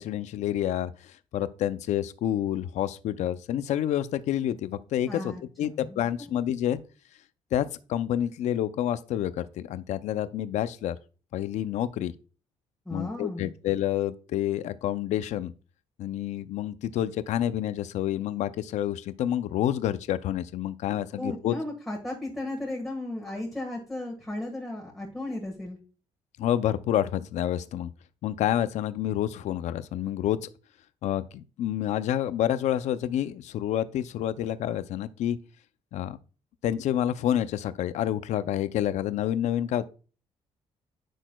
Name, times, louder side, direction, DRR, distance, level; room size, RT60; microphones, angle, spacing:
voice 1, 0.0-6.8 7.5-11.0 11.3-12.1 12.9-15.5 16.0-21.5 26.4-27.9 28.2-30.5 31.0-35.4 35.9-36.2 36.6-39.9, left 11 dB, 75° left, 0.5 m, -28 dB
voice 2, 5.1-6.0 12.8-13.5 20.9-25.8, left 1 dB, ahead, 1.5 m, -35 dB
10.0 x 6.3 x 2.3 m
cardioid pair, 130°, 12 cm